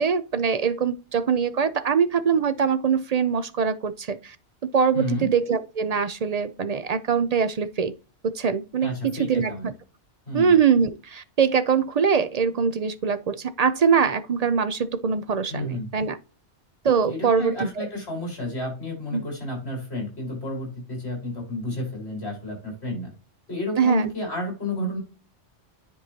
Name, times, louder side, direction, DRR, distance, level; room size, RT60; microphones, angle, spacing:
voice 1, 0.0-4.4 4.7-7.9 8.2-9.7 10.3-16.2 16.8-17.9 19.1-19.3 23.8-24.1, right 6 dB, 55° right, 0.4 m, -23 dB
voice 2, 4.9-5.3 8.8-9.7 10.3-10.5 15.5-15.9 17.1-23.1 23.5-25.0, left 1 dB, 55° left, 4.9 m, -31 dB
10.0 x 4.6 x 2.7 m
omnidirectional pair, 1.3 m